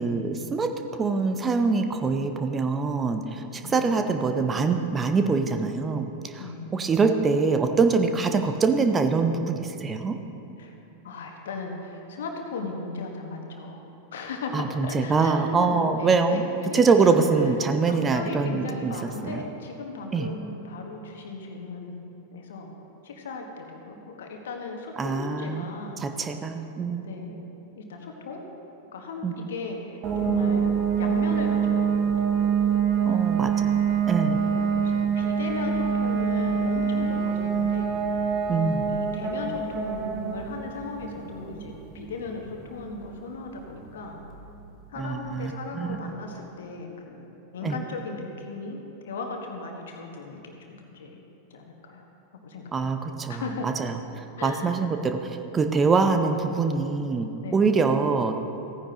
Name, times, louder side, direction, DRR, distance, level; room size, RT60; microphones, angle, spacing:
voice 1, 0.0-6.1 6.3-6.5 6.7-10.2 14.5-16.4 16.7-18.9 19.2-19.4 20.1-20.3 25.0-25.6 26.0-27.1 29.2-29.3 33.1-33.7 34.1-34.4 38.5-38.9 45.0-46.1 47.6-47.8 52.7-53.9 54.4-58.3, right 4 dB, 20° right, 6 dB, 0.7 m, -24 dB
voice 2, 3.6-4.2 6.4-6.9 10.6-10.7 11.0-13.8 14.1-17.5 17.9-22.0 22.3-22.7 23.0-26.0 27.0-28.4 28.9-30.7 31.0-32.1 33.1-33.5 34.4-37.9 38.9-44.2 44.9-51.2 51.5-52.1 52.4-52.7 53.3-53.8 54.4-54.7 57.3-57.9, left 3 dB, 60° left, 2 dB, 1.4 m, -37 dB
sound 1, 30.0-44.6, right 6 dB, 35° right, 1.3 m, -26 dB
16.0 x 9.9 x 3.0 m, 2.9 s
figure-of-eight pair, 90°, 0 cm